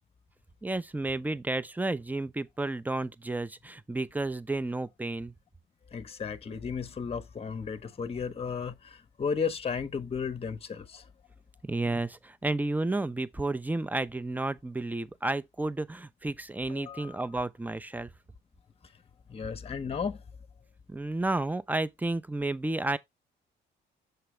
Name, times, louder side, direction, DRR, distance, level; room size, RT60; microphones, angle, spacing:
voice 1, 0.6-5.3 11.6-18.1 20.9-23.0, right 2 dB, 10° right, 0.5 m, -31 dB
voice 2, 5.9-11.0 16.7-17.2 19.3-20.2, left 6 dB, 30° left, 0.8 m, -34 dB
6.9 x 4.8 x 3.1 m
cardioid pair, 90°, 20 cm